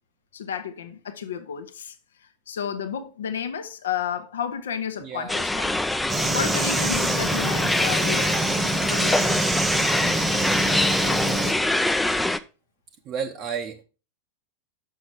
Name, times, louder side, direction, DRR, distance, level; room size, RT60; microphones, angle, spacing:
voice 1, 0.3-1.9 2.5-5.8 6.3-8.5 8.9-9.4, left 8 dB, 65° left, 0.8 m, -31 dB
voice 2, 5.0-5.4 13.0-13.8, right 6 dB, 35° right, 0.7 m, -32 dB
sound 1, 5.3-12.4, left 2 dB, 5° left, 0.4 m, -24 dB
sound 2, 6.1-11.5, right 2 dB, 15° right, 1.0 m, -26 dB
6.7 x 6.2 x 4.6 m
figure-of-eight pair, 90°, 0 cm